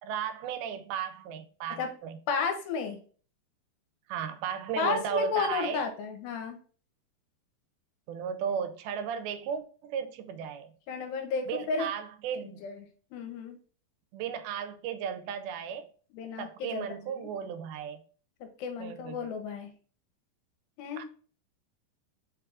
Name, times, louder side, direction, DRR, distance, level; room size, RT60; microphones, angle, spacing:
voice 1, 0.0-2.2 4.1-5.8 8.1-10.7 11.5-12.7 14.1-15.9 16.4-18.0 18.8-19.3 21.0-21.1, right 7 dB, 90° right, 2.4 m, -35 dB
voice 2, 2.3-3.0 4.8-6.6 10.9-11.9 12.6-12.9 13.1-13.6 16.1-16.9 17.2-17.3 18.4-19.7 20.8-21.1, left 5 dB, 85° left, 2.5 m, -33 dB
5.5 x 2.4 x 3.4 m
omnidirectional pair, 4.3 m